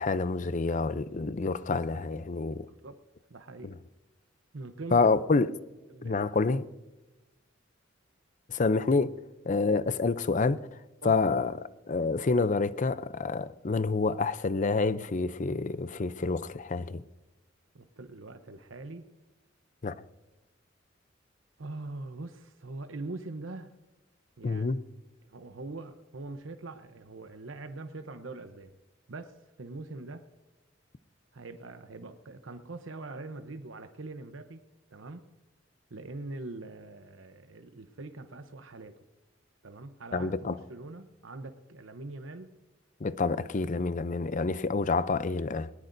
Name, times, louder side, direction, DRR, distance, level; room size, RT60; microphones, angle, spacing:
voice 1, 0.0-2.7 3.6-3.7 4.9-5.5 6.0-6.6 8.5-9.2 9.5-10.7 11.0-11.6 11.9-17.0 19.8-20.0 24.4-24.8 40.1-40.6 43.0-45.7, left 3 dB, 40° left, 0.5 m, -28 dB
voice 2, 2.7-3.0 3.3-3.8 4.5-5.0 5.9-6.3 11.0-11.2 17.7-19.1 21.6-23.7 24.4-24.7 25.3-28.7 29.1-30.2 31.3-34.6 34.9-35.3 35.9-38.9 39.6-42.6 43.3-43.4, right 2 dB, 90° right, 0.8 m, -43 dB
19.5 x 19.5 x 2.7 m
head